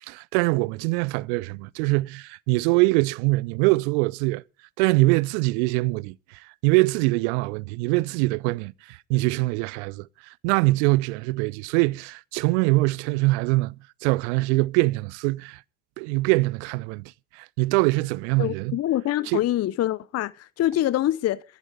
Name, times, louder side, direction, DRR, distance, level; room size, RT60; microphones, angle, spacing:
voice 1, 0.0-4.4 4.8-15.6 16.0-18.8 19.3-19.4, right 23 dB, 70° right, 0.6 m, -23 dB
voice 2, 18.4-21.4, left 13 dB, 45° left, 0.7 m, -25 dB
22.5 x 11.0 x 3.6 m
hypercardioid pair, 55°, 36 cm